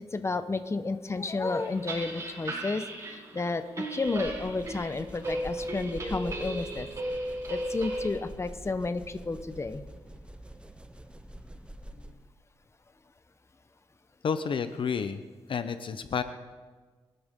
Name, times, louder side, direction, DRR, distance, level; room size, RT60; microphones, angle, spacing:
voice 1, 0.1-6.9 7.5-9.8, left 3 dB, 25° left, 10 dB, 1.0 m, -32 dB
sound 1, 1.5-8.1, right 1 dB, 30° right, 5.5 m, -36 dB
sound 2, 4.1-12.3, right 1 dB, 10° right, 0.7 m, -46 dB
voice 2, 14.2-15.2 15.5-16.2, left 6 dB, 55° left, 10 dB, 0.8 m, -30 dB
24.5 x 12.5 x 3.8 m, 1.4 s
cardioid pair, 75°, 10 cm